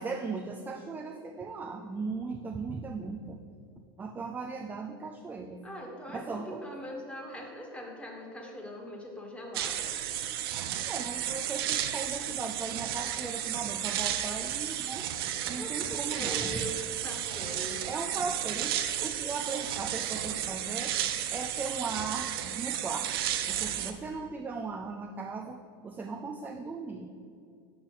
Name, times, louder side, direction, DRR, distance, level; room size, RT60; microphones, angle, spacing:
voice 1, 0.0-3.4 4.0-5.7 6.1-6.6 10.9-15.1 15.5-16.7 17.9-21.0 21.3-23.1 23.5-25.6 25.8-27.1, right 4 dB, 15° right, 2 dB, 0.4 m, -37 dB
voice 2, 5.6-10.0 15.6-17.8, equal, 10° left, 0 dB, 1.5 m, -41 dB
sound 1, 9.5-23.9, right 11 dB, 70° right, 0.6 m, -33 dB
6.2 x 5.3 x 6.0 m, 2.4 s
supercardioid pair, 115°, 13 cm